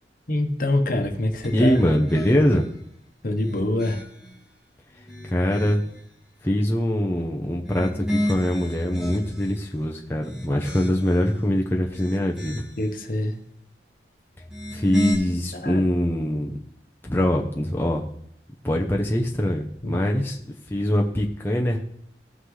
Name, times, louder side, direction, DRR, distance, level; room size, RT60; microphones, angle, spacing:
voice 1, 0.3-1.8 3.2-4.0 12.8-13.3 15.5-15.8 19.8-20.2, left 1 dB, 50° left, 5 dB, 1.1 m, -25 dB
sound 1, 1.4-2.7 3.3-4.4 4.9-6.0 7.5-9.6 10.1-11.3 11.8-12.9 14.4-15.1, left 1 dB, 5° right, 1.6 m, -32 dB
voice 2, 1.5-2.7 5.3-5.8 6.4-12.6 14.7-16.5 17.0-18.0 18.6-20.4 20.7-21.8, equal, 15° left, 0 dB, 0.7 m, -23 dB
15.0 x 5.8 x 3.2 m, 0.68 s
head